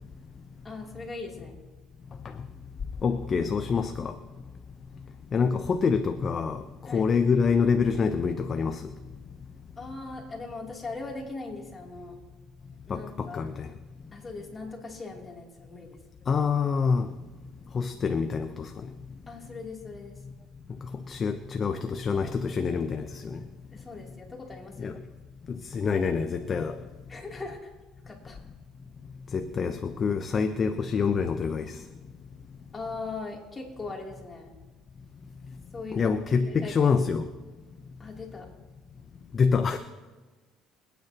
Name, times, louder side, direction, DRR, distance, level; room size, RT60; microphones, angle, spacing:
voice 1, 0.6-1.6 3.0-3.5 6.9-7.1 9.8-12.2 12.9-13.4 14.1-16.0 19.3-20.1 23.7-25.0 27.1-27.6 28.0-28.4 32.7-34.5 35.7-36.2 36.4-36.7 38.0-38.5, left 3 dB, 20° left, 3.0 m, -40 dB
voice 2, 3.0-4.2 5.3-6.6 6.9-8.9 12.9-13.7 16.3-17.1 17.7-18.7 21.1-23.4 24.8-25.0 25.5-26.8 29.3-31.8 35.9-37.3 39.3-39.8, left 5 dB, 35° left, 0.8 m, -26 dB
25.0 x 9.4 x 2.9 m
cardioid pair, 105°, 0 cm